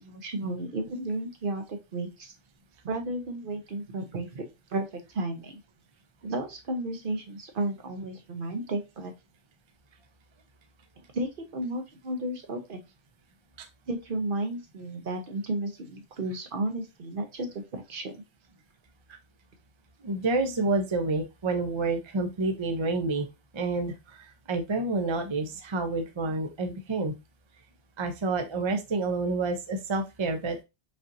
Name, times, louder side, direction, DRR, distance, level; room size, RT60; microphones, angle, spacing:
voice 1, 0.0-2.3 2.8-4.4 4.7-5.6 6.2-9.1 11.1-12.8 13.9-18.1 19.1-19.2, right 2 dB, 55° right, 5 dB, 0.9 m, -33 dB
voice 2, 20.0-23.3 23.5-27.1 28.0-30.6, right 3 dB, 35° right, 5 dB, 0.5 m, -29 dB
5.2 x 2.9 x 2.5 m, 0.24 s
omnidirectional pair, 1.2 m